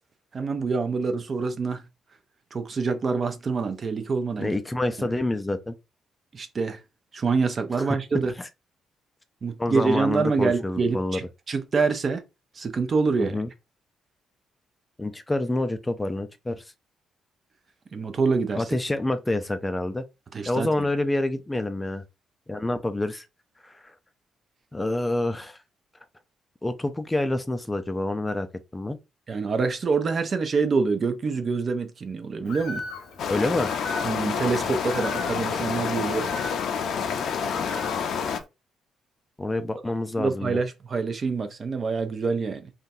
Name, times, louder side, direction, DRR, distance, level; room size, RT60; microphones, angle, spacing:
voice 1, 0.3-1.8 2.5-4.6 6.3-6.8 7.1-8.3 9.4-12.2 12.5-13.4 17.9-18.6 20.3-20.7 29.3-32.8 34.0-36.3 40.2-42.7, right 4 dB, 40° right, 0.6 m, -26 dB
voice 2, 4.4-5.7 7.8-8.0 8.4-8.5 9.6-11.2 13.2-13.5 15.0-16.6 18.5-20.0 20.5-22.0 22.5-23.3 23.6-23.9 24.7-25.6 26.6-28.5 28.7-29.0 33.3-33.7 39.4-40.6, left 2 dB, 15° left, 0.4 m, -27 dB
Bird, 32.4-38.4, left 3 dB, 90° left, 0.8 m, -39 dB
sound 1, 33.2-38.4, left 6 dB, 70° left, 0.5 m, -28 dB
3.7 x 2.3 x 2.6 m
cardioid pair, 90°, 0 cm